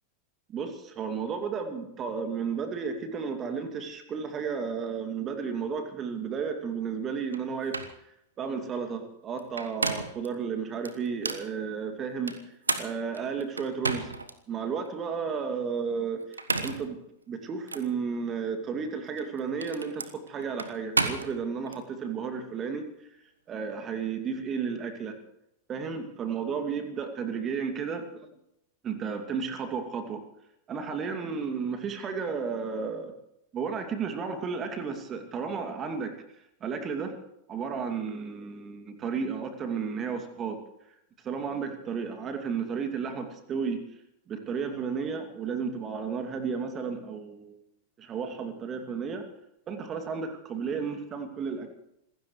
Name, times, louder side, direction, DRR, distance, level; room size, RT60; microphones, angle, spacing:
voice 1, 0.5-7.8 8.4-12.4 12.8-14.1 14.5-17.0 17.3-22.9 23.5-25.2 25.7-28.1 28.8-30.2 30.7-33.2 33.5-36.1 36.6-37.2 37.5-40.6 41.2-43.8 44.3-47.6 48.0-49.3 49.7-51.7, right 6 dB, 25° right, 6 dB, 2.5 m, -33 dB
sound 1, 7.3-7.4 7.7-8.0 9.4-10.3 10.8-11.5 12.3-14.3 14.8-14.9 16.2-16.9 17.7-17.9 19.1-21.8, right 3 dB, 80° right, 1.2 m, -32 dB
27.5 x 16.0 x 3.2 m, 0.80 s
figure-of-eight pair, 90°, 0 cm